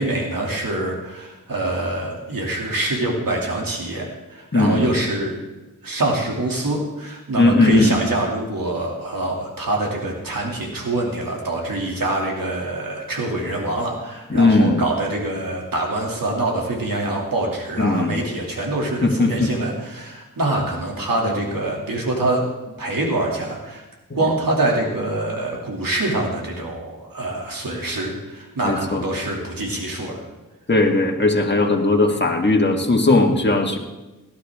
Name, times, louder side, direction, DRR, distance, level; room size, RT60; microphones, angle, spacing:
voice 1, 0.0-5.4 5.8-22.4 22.8-23.8 24.1-30.2, right 2 dB, 90° right, -1 dB, 2.8 m, -25 dB
voice 2, 4.5-4.9 7.4-7.9 14.3-14.8 17.8-18.3 19.0-19.5 24.1-24.2 28.6-29.0 30.7-33.8, left 2 dB, 35° left, 2 dB, 1.8 m, -18 dB
17.5 x 11.5 x 3.6 m, 1.1 s
cardioid pair, 45°, 33 cm